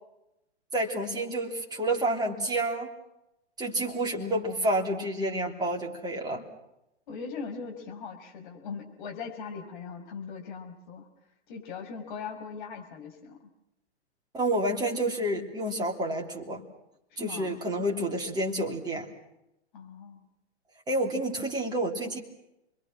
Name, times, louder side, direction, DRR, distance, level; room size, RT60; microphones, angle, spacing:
voice 1, 0.7-2.9 3.6-6.4 14.3-16.6 17.2-19.1 20.9-22.2, right 1 dB, 10° right, -1 dB, 3.3 m, -29 dB
voice 2, 7.1-11.1 11.5-13.5 17.1-17.5 19.7-20.2, left 5 dB, 45° left, 4 dB, 5.6 m, -40 dB
29.0 x 22.5 x 6.2 m, 0.86 s
figure-of-eight pair, 120°, 34 cm